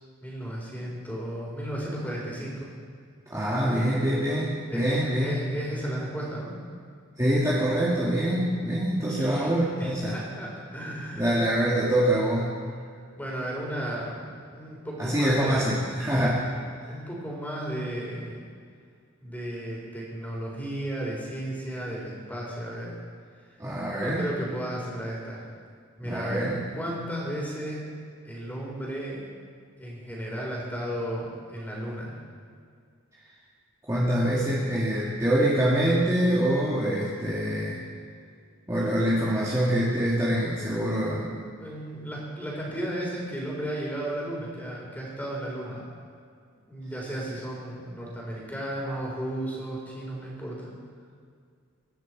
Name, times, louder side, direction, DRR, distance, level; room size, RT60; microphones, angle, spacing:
voice 1, 0.2-2.7 4.7-6.5 8.8-11.4 13.2-15.7 16.9-18.4 19.2-23.0 24.0-25.5 26.0-26.4 26.7-27.8 28.2-29.2 29.8-32.2 40.5-40.8 41.6-45.8 46.7-50.7, right 1 dB, 10° left, -4 dB, 4.5 m, -34 dB
voice 2, 3.3-5.3 7.2-10.2 11.2-12.5 15.0-16.5 23.6-24.3 26.0-26.6 33.9-37.8 38.7-41.3 48.8-48.9, right 1 dB, 15° right, -8 dB, 2.1 m, -25 dB
24.5 x 11.5 x 4.8 m, 2.2 s
head